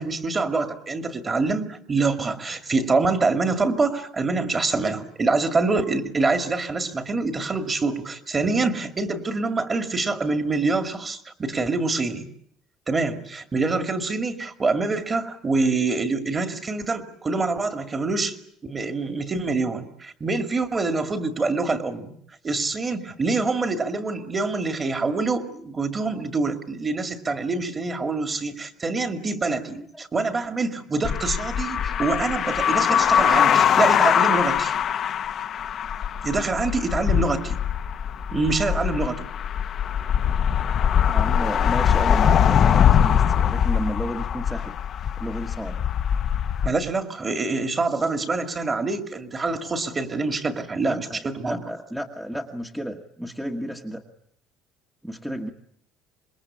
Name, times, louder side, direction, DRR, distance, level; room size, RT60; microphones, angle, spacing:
voice 1, 0.0-12.2 12.9-18.4 18.6-22.1 22.4-34.8 36.2-37.6 38.3-39.2 46.6-51.6, right 3 dB, 20° right, 7 dB, 2.2 m, -25 dB
sound 1, 31.0-46.7, left 8 dB, 40° left, 1.0 m, -22 dB
voice 2, 32.9-33.7 41.0-44.8 45.2-45.8 50.9-54.0 55.0-55.5, equal, ahead, 2 dB, 1.5 m, -32 dB
26.5 x 21.5 x 8.5 m, 0.67 s
cardioid pair, 140°, 0 cm